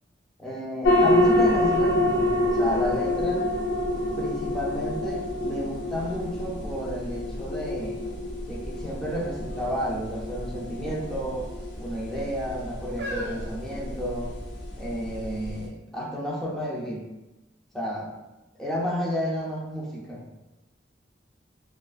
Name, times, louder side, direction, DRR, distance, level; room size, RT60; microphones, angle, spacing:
voice 1, 0.4-3.4 4.2-8.0 8.5-11.5 11.8-14.3 14.8-17.1 17.7-18.1 18.6-20.3, equal, 5° left, -5 dB, 0.4 m, -31 dB
sound 1, 0.8-15.6, left 1 dB, 80° left, 0.6 m, -27 dB
sound 2, 5.4-5.5 5.9-7.5 8.1-8.6 9.4-9.8 10.0-10.2 11.1-11.7 12.4-14.5 15.2-15.3, equal, 60° right, 0.6 m, -41 dB
2.5 x 2.4 x 2.3 m, 1.0 s
head